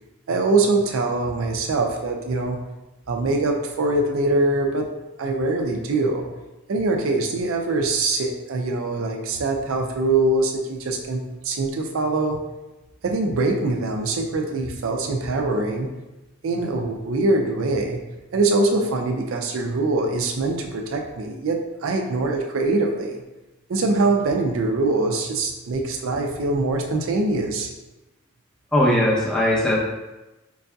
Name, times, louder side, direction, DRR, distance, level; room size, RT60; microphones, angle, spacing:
voice 1, 0.3-2.6 3.1-4.9 5.2-6.2 6.7-12.4 13.0-15.9 16.4-18.0 18.3-23.2 23.7-27.7, right 2 dB, 75° right, 2 dB, 0.4 m, -23 dB
voice 2, 28.7-29.8, left 1 dB, 5° left, -6 dB, 0.6 m, -19 dB
4.6 x 2.6 x 2.3 m, 1.0 s
head